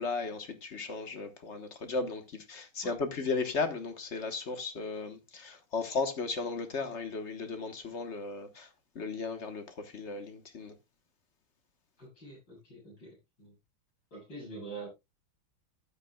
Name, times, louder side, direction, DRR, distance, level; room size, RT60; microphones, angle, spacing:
voice 1, 0.0-8.7 8.9-10.7, left 4 dB, 40° left, 1.2 m, -35 dB
voice 2, 12.0-13.5 14.1-14.9, right 3 dB, 60° left, 8.4 m, -45 dB
13.5 x 9.0 x 2.3 m
omnidirectional pair, 2.2 m